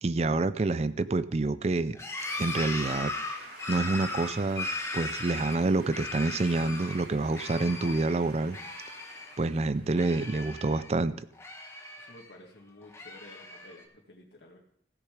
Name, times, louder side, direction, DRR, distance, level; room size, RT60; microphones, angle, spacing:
voice 1, 0.0-2.0 2.4-3.1 3.7-4.7 4.9-8.6 9.4-11.2, right 3 dB, 35° right, 15 dB, 0.4 m, -27 dB
sound 1, 1.9-7.0 7.3-8.2 8.5-9.5 9.7-10.9 11.3-12.3 12.8-13.8, left 2 dB, 15° left, 1.2 m, -38 dB
sound 2, 2.1-10.5, right 2 dB, 85° right, 4.2 m, -50 dB
voice 2, 12.0-14.6, left 1 dB, 80° left, -1 dB, 1.8 m, -52 dB
15.5 x 6.7 x 5.0 m, 0.67 s
head